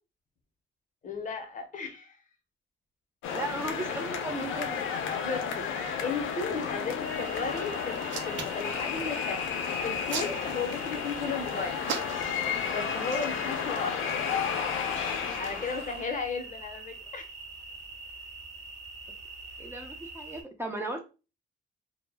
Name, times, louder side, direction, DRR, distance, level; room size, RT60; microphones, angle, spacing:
voice 1, 1.0-2.2 4.5-4.6 5.2-9.4 9.8-11.8 12.7-14.0 15.4-17.3, left 4 dB, 40° left, 5 dB, 0.6 m, -35 dB
sound 1, 3.2-16.2, left 7 dB, 85° left, 0.5 m, -32 dB
voice 2, 3.3-4.7 19.6-21.0, right 1 dB, 10° right, 1 dB, 0.4 m, -35 dB
sound 2, 7.0-20.4, right 3 dB, 35° right, 0.9 m, -44 dB
Hands, 7.9-8.7 9.7-10.9 11.8-12.4 13.0-13.3, right 6 dB, 70° right, 0.5 m, -35 dB
2.0 x 2.0 x 3.2 m, 0.31 s
cardioid pair, 90°, 20 cm